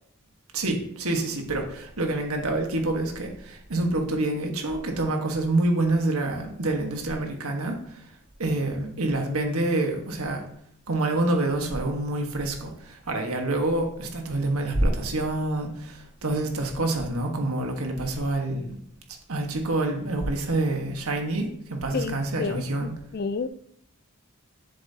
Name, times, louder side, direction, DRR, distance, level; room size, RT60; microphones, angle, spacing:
voice 1, 0.5-8.1 8.4-10.4 10.9-18.8 19.3-22.9, right 2 dB, 85° right, 3 dB, 1.4 m, -27 dB
voice 2, 21.9-22.6 23.1-23.5, left 5 dB, 45° left, 13 dB, 0.3 m, -29 dB
7.5 x 7.3 x 2.8 m, 0.69 s
head